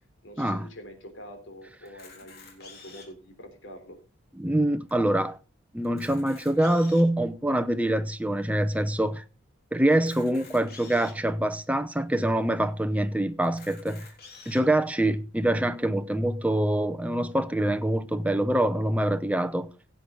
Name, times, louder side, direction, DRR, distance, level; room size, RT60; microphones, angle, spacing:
voice 1, 0.2-4.0, equal, 70° left, 3.7 m, -45 dB
Camera, 1.9-3.2 3.9-4.0 4.2-4.3 4.9-5.0 5.8-7.2 7.8-7.9 9.9-11.2 11.9-12.0 12.2-12.3 13.4-14.6, left 5 dB, 50° left, 3.6 m, -48 dB
voice 2, 4.4-5.4 5.7-9.2 9.7-14.1 14.5-19.7, right 1 dB, 5° right, 0.6 m, -25 dB
16.5 x 8.0 x 3.9 m
head